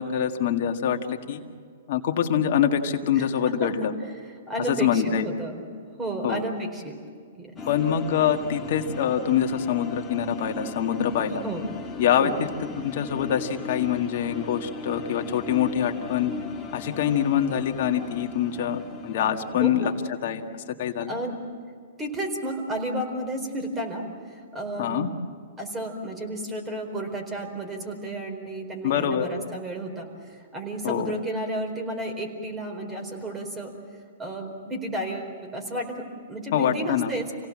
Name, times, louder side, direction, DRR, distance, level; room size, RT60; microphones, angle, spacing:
voice 1, 0.0-1.4 1.9-3.9 4.7-5.3 6.2-6.4 7.7-11.4 12.0-12.3 12.8-16.3 16.7-19.9 20.2-20.4 20.8-21.1 24.8-25.1 28.8-29.3 30.8-31.1 36.5-37.1, left 9 dB, 55° left, 4 dB, 1.9 m, -25 dB
voice 2, 3.1-3.9 4.2-5.7 6.0-7.0 7.4-7.5 11.4-11.7 12.2-12.4 19.5-19.9 21.1-21.4 22.0-25.1 25.6-33.7 34.2-37.5, right 1 dB, 15° right, 3 dB, 4.4 m, -32 dB
sound 1, 7.6-20.1, left 3 dB, 15° left, 1.9 m, -38 dB
27.5 x 18.0 x 7.5 m, 2.1 s
hypercardioid pair, 140°, 0 cm